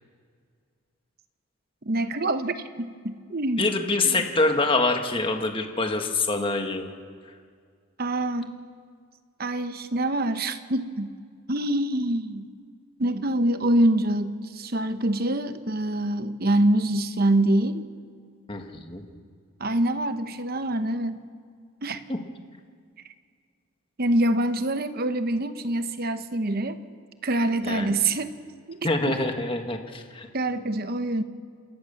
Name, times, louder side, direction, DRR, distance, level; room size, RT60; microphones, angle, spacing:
voice 1, 1.8-3.7 4.0-4.2 8.0-8.6 9.4-11.1 11.5-12.5 13.0-17.8 19.6-21.3 21.8-22.0 24.0-26.8 27.2-28.3 28.7-29.1 30.3-31.2, right 1 dB, 45° right, 10 dB, 1.0 m, -25 dB
voice 2, 3.6-6.9 18.5-19.0 22.1-22.2 27.6-28.0 28.8-30.3, left 3 dB, 25° left, 4 dB, 1.6 m, -25 dB
28.0 x 14.0 x 7.1 m, 2.1 s
head